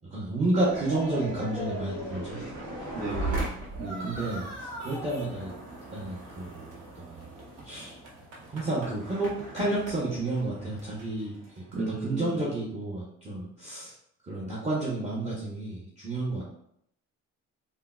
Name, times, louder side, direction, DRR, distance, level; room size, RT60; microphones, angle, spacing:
voice 1, 0.1-2.4 4.0-5.5 5.9-7.3 7.6-7.9 8.5-11.3 11.8-13.9 14.2-16.4, right 2 dB, 20° right, -7 dB, 0.8 m, -31 dB
sound 1, 0.5-11.8, right 2 dB, 80° right, 0.9 m, -38 dB
voice 2, 2.9-3.5 3.8-4.2 11.7-12.4, right 3 dB, 55° right, -8 dB, 0.9 m, -34 dB
3.6 x 2.1 x 2.3 m, 0.73 s
cardioid pair, 90°, 30 cm